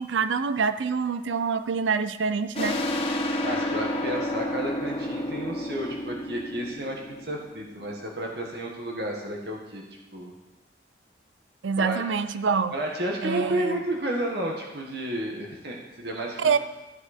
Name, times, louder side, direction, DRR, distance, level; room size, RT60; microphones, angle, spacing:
voice 1, 0.0-2.8 11.6-12.7 13.2-13.8 16.4-16.6, right 5 dB, 85° right, 12 dB, 0.5 m, -26 dB
sound 1, 2.5-7.9, left 1 dB, 30° left, 1.1 m, -30 dB
voice 2, 3.4-9.8 10.1-10.3 11.8-12.0 12.7-16.6, right 1 dB, 60° right, 0 dB, 1.7 m, -31 dB
14.0 x 7.8 x 4.4 m, 1.1 s
head